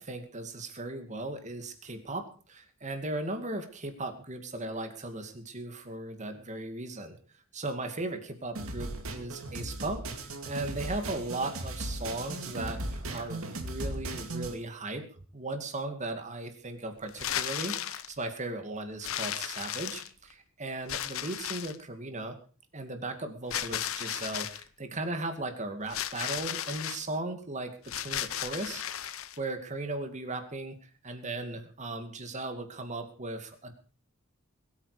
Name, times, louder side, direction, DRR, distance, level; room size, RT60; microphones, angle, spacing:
voice 1, 0.0-7.2 7.5-15.0 15.3-22.4 22.7-30.7 31.0-33.7, right 2 dB, 35° right, 7 dB, 2.3 m, -37 dB
sound 1, 8.6-14.6, right 2 dB, 90° right, 2.5 m, -37 dB
sound 2, 17.1-18.1 19.0-20.3 20.9-21.8 23.5-24.6 25.9-27.0 27.8-29.4, left 10 dB, 80° left, 0.9 m, -35 dB
21.5 x 9.1 x 5.1 m, 0.40 s
head